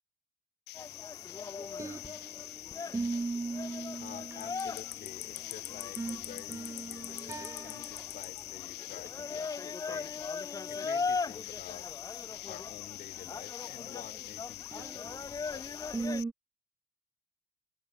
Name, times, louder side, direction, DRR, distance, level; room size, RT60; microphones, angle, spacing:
sound 1, 0.7-16.2, left 17 dB, 80° left, 1.0 m, -44 dB
sound 2, 0.8-16.2, left 4 dB, 20° left, 0.9 m, -40 dB
sound 3, 1.6-2.5 2.9-5.1 5.7-8.2 8.5-8.6 8.9-9.1 10.6-10.7 11.1-11.2 14.7-15.4 15.9-16.3, right 3 dB, 15° right, 1.0 m, -39 dB
voice 1, 4.0-10.2 10.7-15.6, left 10 dB, 55° left, 2.3 m, -50 dB
cardioid pair, 110°, 17 cm